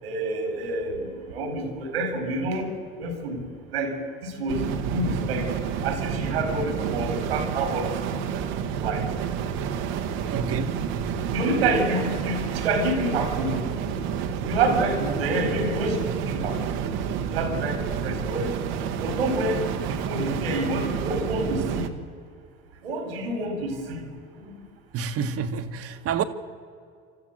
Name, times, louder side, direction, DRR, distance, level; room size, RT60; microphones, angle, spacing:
voice 1, 0.0-2.7 3.0-3.4 3.7-3.9 4.2-5.5 5.8-8.4 8.8-9.1 11.3-13.6 14.5-16.8 17.3-18.6 19.0-19.6 19.9-21.9 22.8-24.0 24.4-24.5, right 2 dB, 90° right, 4.2 m, -28 dB
sound 1, 4.5-21.9, right 7 dB, 70° right, 1.6 m, -29 dB
voice 2, 10.3-10.8 24.9-26.2, right 6 dB, 50° right, 1.6 m, -28 dB
28.5 x 13.5 x 7.9 m
hypercardioid pair, 75°, 29 cm